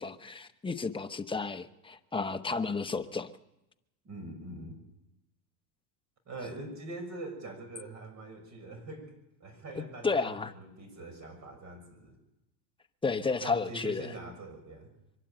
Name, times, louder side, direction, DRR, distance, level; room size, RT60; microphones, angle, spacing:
voice 1, 0.0-3.3 9.8-10.5 13.0-14.1, left 4 dB, 10° left, 7 dB, 1.0 m, -32 dB
voice 2, 4.0-4.8 6.3-9.1 9.4-12.2 13.4-14.9, right 2 dB, 35° right, 6 dB, 6.6 m, -43 dB
24.0 x 12.0 x 8.9 m, 0.93 s
supercardioid pair, 110°, 50 cm